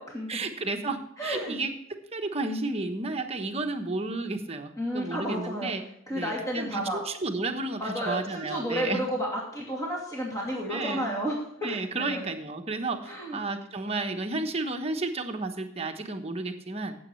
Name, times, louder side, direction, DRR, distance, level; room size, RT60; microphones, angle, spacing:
voice 1, 0.3-5.8 6.1-9.0 10.7-11.1 11.6-17.0, right 3 dB, 30° right, 4 dB, 1.1 m, -32 dB
voice 2, 1.2-1.6 4.8-5.7 6.1-7.0 7.8-12.3 13.0-13.4, equal, 15° left, -3 dB, 2.5 m, -32 dB
15.5 x 7.9 x 3.2 m, 0.73 s
head